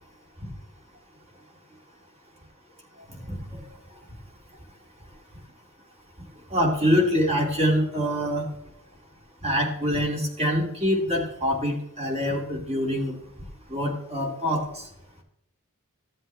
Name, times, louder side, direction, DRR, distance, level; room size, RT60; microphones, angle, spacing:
voice 1, 3.1-3.7 6.5-8.5 9.4-13.2 13.7-14.9, equal, 30° right, -1 dB, 2.6 m, -25 dB
14.0 x 7.7 x 3.4 m, 0.80 s
head